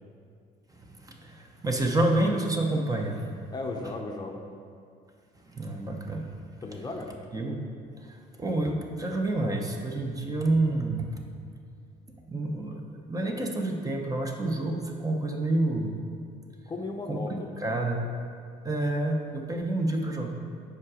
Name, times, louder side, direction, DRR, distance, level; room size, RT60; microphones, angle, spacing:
voice 1, 0.8-3.2 5.4-6.3 7.3-7.6 8.0-11.2 12.3-12.8 13.1-16.0 17.1-18.0 18.6-20.3, right 2 dB, 20° right, 2 dB, 0.8 m, -28 dB
voice 2, 3.5-4.4 6.6-7.1 16.7-17.8, left 2 dB, 25° left, 1 dB, 0.7 m, -36 dB
7.4 x 5.0 x 4.9 m, 2.2 s
cardioid pair, 110°, 17 cm